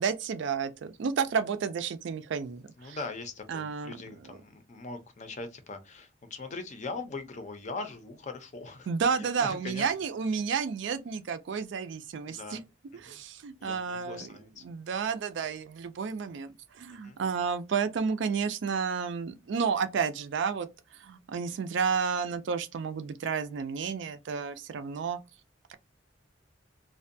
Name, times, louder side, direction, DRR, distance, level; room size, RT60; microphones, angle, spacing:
voice 1, 0.0-3.0 3.5-3.9 4.3-4.4 8.9-12.6 13.0-14.3 14.6-20.7 21.0-25.2 25.7-25.8, right 6 dB, 65° right, 0.3 m, -31 dB
voice 2, 2.8-8.9 9.2-9.9 12.3-12.6 13.0-13.2 13.6-14.6 17.0-17.2, left 3 dB, 40° left, 0.5 m, -41 dB
2.5 x 2.1 x 2.5 m
head